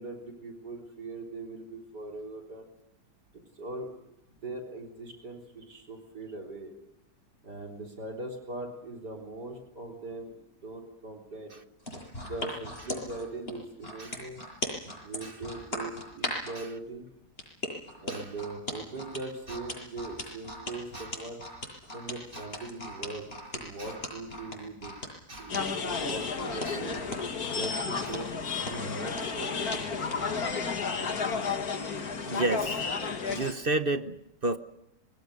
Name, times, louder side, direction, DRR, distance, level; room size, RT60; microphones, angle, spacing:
voice 1, 0.0-2.7 3.6-3.9 4.3-6.7 7.4-11.5 12.2-14.4 15.0-17.1 18.0-21.4 21.9-23.2 23.5-25.0 25.4-25.6 25.8-27.0 27.5-28.3 28.7-30.1, right 2 dB, 70° right, 1 dB, 4.4 m, -40 dB
sound 1, 11.8-16.6 17.4-30.2 30.6-30.8, left 1 dB, 35° left, 8.2 m, -38 dB
sound 2, 25.5-33.5, left 5 dB, 60° left, 2.3 m, -32 dB
voice 2, 32.3-32.8 33.3-34.6, right 2 dB, 40° right, 10 dB, 0.9 m, -31 dB
27.0 x 22.5 x 6.5 m, 0.83 s
omnidirectional pair, 1.9 m